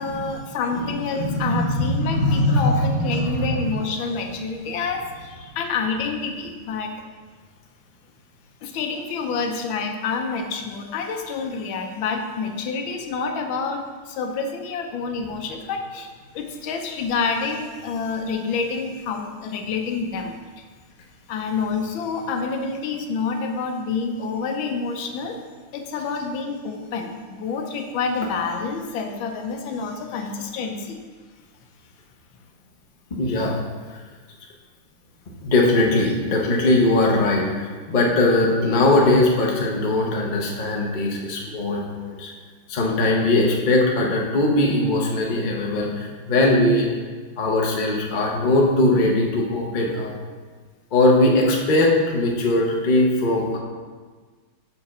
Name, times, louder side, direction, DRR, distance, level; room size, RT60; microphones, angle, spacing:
voice 1, 0.0-6.9 8.6-20.6 21.3-25.4 25.7-31.0, left 4 dB, 70° left, 4 dB, 1.4 m, -28 dB
voice 2, 1.2-2.9 33.1-33.5 35.4-42.3 42.7-46.9 47.4-50.1 50.9-53.6, left 2 dB, 55° left, -1 dB, 0.5 m, -20 dB
5.5 x 4.9 x 5.7 m, 1.4 s
omnidirectional pair, 2.4 m